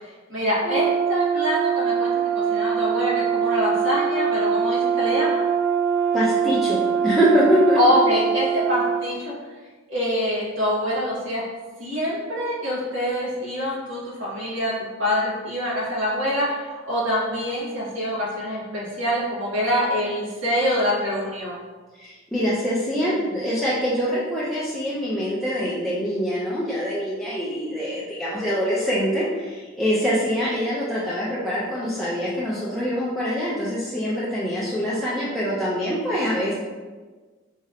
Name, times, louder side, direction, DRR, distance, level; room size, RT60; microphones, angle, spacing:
voice 1, 0.3-5.4 7.8-9.3 9.9-11.4 11.8-14.7 15.0-21.6, left 1 dB, 70° right, -8 dB, 1.3 m, -25 dB
Brass instrument, 0.6-9.0, right 7 dB, 30° right, 1.3 m, -23 dB
voice 2, 6.1-7.8 21.9-36.5, equal, ahead, -9 dB, 0.4 m, -24 dB
4.0 x 2.7 x 2.5 m, 1.4 s
head